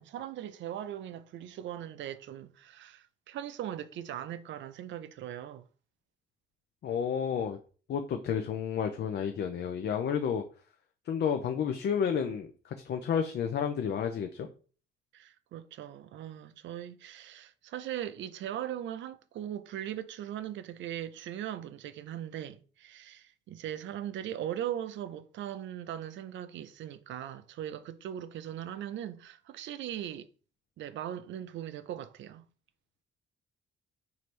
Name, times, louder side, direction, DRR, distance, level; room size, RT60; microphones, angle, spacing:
voice 1, 0.0-5.7 15.1-30.3 30.8-32.4, right 11 dB, 70° right, 0.5 m, -39 dB
voice 2, 6.8-7.6 7.9-10.4 11.1-14.5, left 7 dB, 60° left, 0.5 m, -31 dB
4.3 x 2.7 x 3.2 m
cardioid pair, 90°, 20 cm